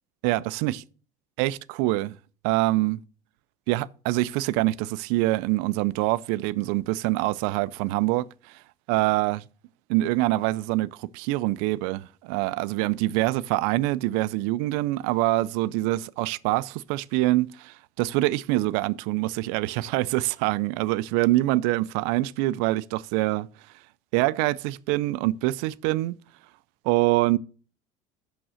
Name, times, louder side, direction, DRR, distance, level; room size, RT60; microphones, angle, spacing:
voice 1, 0.2-0.8 1.4-2.2 2.4-3.0 3.7-8.6 8.9-9.4 9.9-23.5 24.1-26.2 26.8-27.4, right 18 dB, 75° right, 0.4 m, -25 dB
6.2 x 6.0 x 6.2 m
supercardioid pair, 115°, 17 cm